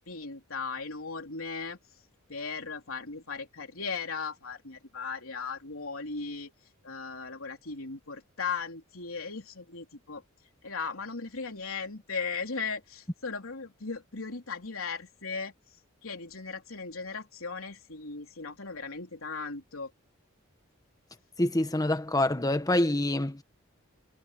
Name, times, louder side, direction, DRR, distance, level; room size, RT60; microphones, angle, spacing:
voice 1, 0.0-1.8 2.3-6.5 6.8-10.2 10.6-15.5 16.0-19.9, left 4 dB, 80° left, 3.7 m, -37 dB
voice 2, 21.4-23.4, left 1 dB, 20° left, 1.4 m, -26 dB
head